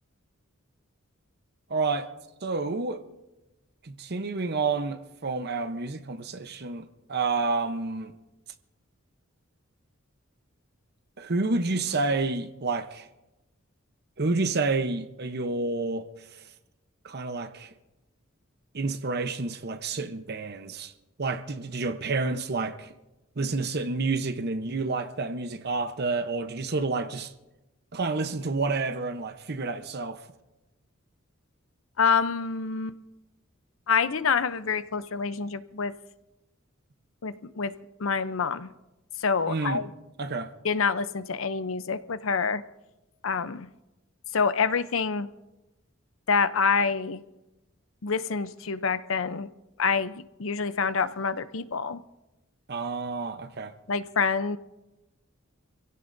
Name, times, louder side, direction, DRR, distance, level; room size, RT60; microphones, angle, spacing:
voice 1, 1.7-2.1 2.4-3.0 3.8-8.1 11.2-13.1 14.2-16.1 17.0-17.7 18.7-20.9 21.2-22.9 23.4-27.3 27.9-30.2 39.5-39.8 40.2-40.5 52.7-53.7, right 3 dB, 55° right, 0.9 m, -29 dB
voice 2, 32.0-33.0 33.9-35.9 37.2-37.7 38.0-38.7 39.2-39.9 40.6-42.6 43.2-43.7 44.3-45.3 46.3-47.2 48.0-49.5 49.8-52.0 53.9-54.6, left 5 dB, 75° left, 0.7 m, -26 dB
27.5 x 16.5 x 2.7 m
head